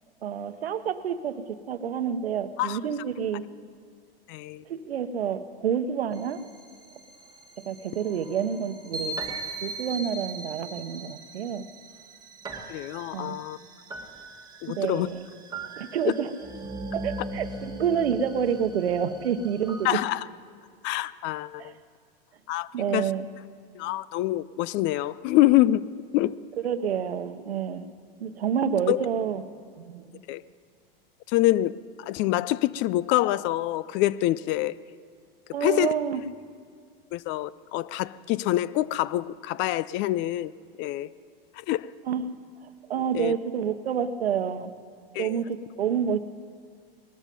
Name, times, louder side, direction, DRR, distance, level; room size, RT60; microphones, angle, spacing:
voice 1, 0.2-3.5 4.7-6.4 7.6-9.2 9.6-11.7 13.1-13.4 14.8-15.3 15.8-16.3 16.9-20.0 21.6-21.7 22.7-23.3 26.6-27.8 28.2-29.4 29.8-30.1 35.5-36.2 42.1-42.2 42.6-44.7 45.2-46.2, right 8 dB, 85° right, 11 dB, 1.0 m, -28 dB
voice 2, 4.3-4.6 12.7-13.6 14.6-15.1 19.8-20.2 20.8-21.7 22.5-23.1 23.8-25.8 26.1-26.3 28.9-29.0 30.3-30.4 31.3-34.7 35.6-35.9 37.1-40.5 40.8-41.1 41.7-41.9 43.1-43.3 45.2-45.4, left 15 dB, 40° left, 19 dB, 0.4 m, -25 dB
sound 1, 6.1-20.0, right 2 dB, 15° right, 1.8 m, -40 dB
20.0 x 13.0 x 5.3 m, 2.1 s
hypercardioid pair, 105°, 30 cm